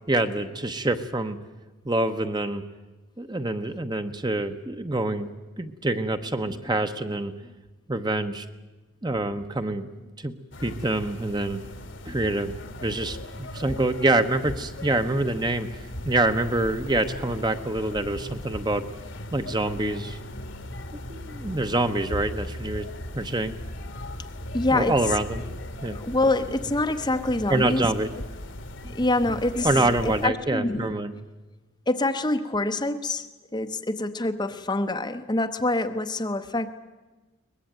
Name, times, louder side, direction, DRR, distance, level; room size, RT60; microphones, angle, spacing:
voice 1, 0.1-1.4 1.8-2.6 3.2-5.3 5.6-7.3 7.9-8.4 9.0-9.9 10.2-10.3 10.6-11.6 12.0-12.5 12.8-18.8 19.3-20.2 21.1-22.9 23.1-23.5 24.7-25.4 25.8-26.0 27.5-28.1 28.8-28.9 29.6-31.1, right 2 dB, 20° right, 8 dB, 1.0 m, -26 dB
sound 1, 10.5-30.3, left 1 dB, 60° left, 1.4 m, -38 dB
voice 2, 24.5-24.9 25.9-27.8 28.9-30.9 31.9-33.2 33.5-36.7, left 2 dB, 20° left, 7 dB, 0.8 m, -26 dB
23.0 x 20.0 x 9.0 m, 1.2 s
head